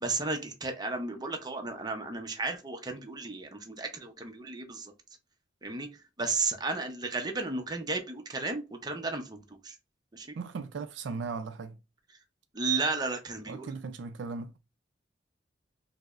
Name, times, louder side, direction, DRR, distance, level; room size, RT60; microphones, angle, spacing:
voice 1, 0.0-4.9 5.6-5.9 6.2-9.8 10.1-10.3 12.5-13.7, right 3 dB, 20° right, 0.5 m, -33 dB
voice 2, 10.3-11.8 13.5-14.6, right 4 dB, 70° right, 0.3 m, -37 dB
4.6 x 2.0 x 2.4 m
head